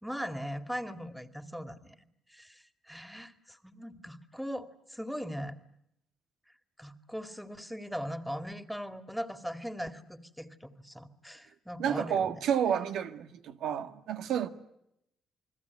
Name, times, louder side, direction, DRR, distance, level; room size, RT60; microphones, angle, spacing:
voice 1, 0.0-1.9 2.3-5.6 6.8-12.4, equal, ahead, 2.2 m, -39 dB
voice 2, 11.8-14.5, right 8 dB, 80° right, 1.6 m, -30 dB
29.5 x 20.5 x 9.5 m
cardioid pair, 90°, 0 cm